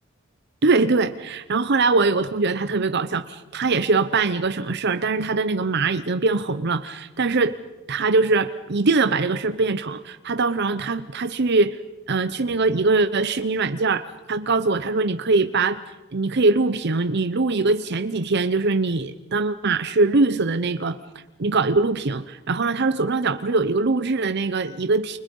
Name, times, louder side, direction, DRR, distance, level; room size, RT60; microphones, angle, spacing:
voice 1, 0.6-7.6 7.9-11.8 12.1-15.8 16.1-21.0 21.4-25.2, right 3 dB, 55° right, 11 dB, 0.8 m, -22 dB
29.5 x 24.5 x 5.4 m, 1.1 s
head